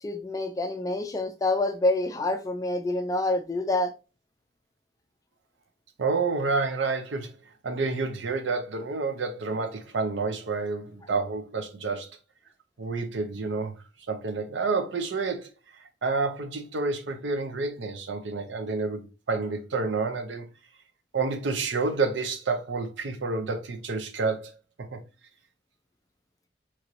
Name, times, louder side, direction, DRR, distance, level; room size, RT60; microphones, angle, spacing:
voice 1, 0.0-3.9, left 2 dB, 20° left, 0.3 m, -27 dB
voice 2, 6.0-7.3 7.6-12.1 12.8-13.7 14.1-15.5 16.0-20.5 21.1-25.0, right 4 dB, 75° right, 0.5 m, -29 dB
3.0 x 2.9 x 2.5 m
head